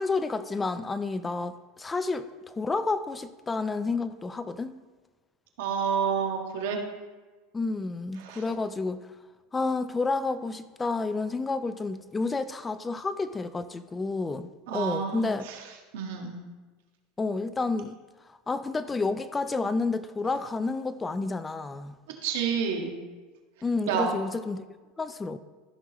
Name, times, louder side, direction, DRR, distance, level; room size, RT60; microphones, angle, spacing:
voice 1, 0.0-4.8 7.5-9.1 9.5-15.5 17.2-18.0 18.3-22.0 23.6-24.6 25.0-25.4, left 3 dB, 15° left, 13 dB, 0.4 m, -30 dB
voice 2, 5.6-6.8 8.2-8.4 14.7-15.6 15.9-16.4 22.2-22.9 23.9-24.1, right 6 dB, 80° right, 2 dB, 1.6 m, -29 dB
14.0 x 6.2 x 3.0 m, 1.3 s
supercardioid pair, 140°, 0 cm